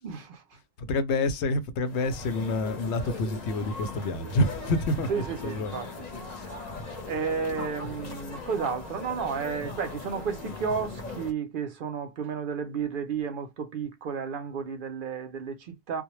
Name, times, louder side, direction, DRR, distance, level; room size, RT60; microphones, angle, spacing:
voice 1, 0.0-0.4 5.1-16.0, right 6 dB, 60° right, 0.6 m, -32 dB
voice 2, 0.8-5.8 6.3-6.5, left 2 dB, 85° left, 0.9 m, -28 dB
sound 1, 1.9-11.3, left 3 dB, 45° left, 0.7 m, -39 dB
2.1 x 2.1 x 3.0 m
omnidirectional pair, 1.1 m